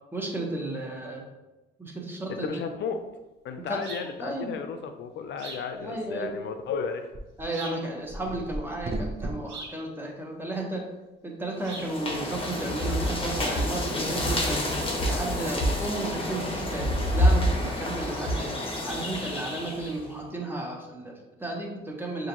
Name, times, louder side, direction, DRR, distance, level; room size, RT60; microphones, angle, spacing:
voice 1, 0.1-1.2 1.8-2.6 3.7-3.8 4.2-4.5 5.8-6.3 7.4-10.9 11.2-18.5 18.8-22.3, right 2 dB, 10° right, -1 dB, 1.1 m, -33 dB
voice 2, 2.3-3.0 3.4-7.1, left 6 dB, 65° left, 7 dB, 0.5 m, -33 dB
sound 1, 3.7-3.8 7.1-7.4 8.0-9.4, right 1 dB, 30° right, 0.6 m, -34 dB
sound 2, 3.8-4.2 5.4-5.7 7.5-7.9 9.5-9.8 11.6-12.0, right 2 dB, 75° right, 1.5 m, -41 dB
sound 3, 11.6-20.1, left 1 dB, 25° left, 1.0 m, -28 dB
6.4 x 2.6 x 2.9 m, 1.1 s
cardioid pair, 90°, 20 cm